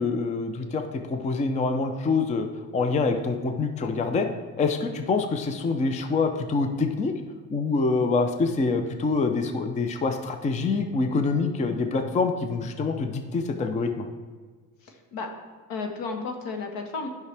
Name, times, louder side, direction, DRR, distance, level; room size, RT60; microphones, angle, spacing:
voice 1, 0.0-2.5 2.7-4.3 4.6-7.1 7.5-14.1, left 4 dB, 20° left, 6 dB, 0.5 m, -25 dB
voice 2, 14.8-15.3 15.7-17.1, left 4 dB, 80° left, 4 dB, 1.4 m, -33 dB
11.0 x 5.8 x 3.4 m, 1.5 s
cardioid pair, 150°, 35 cm